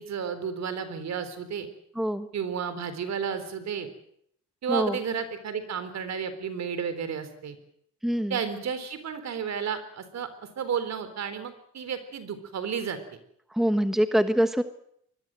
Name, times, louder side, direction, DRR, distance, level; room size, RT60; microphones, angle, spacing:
voice 1, 0.0-1.7 2.3-3.9 4.6-7.6 8.3-10.3 10.6-13.0, right 7 dB, 60° right, 11 dB, 4.0 m, -32 dB
voice 2, 2.0-2.3 4.7-5.0 8.0-8.4 13.5-14.6, equal, ahead, 10 dB, 1.4 m, -24 dB
23.5 x 21.0 x 7.8 m, 0.70 s
cardioid pair, 90°, 30 cm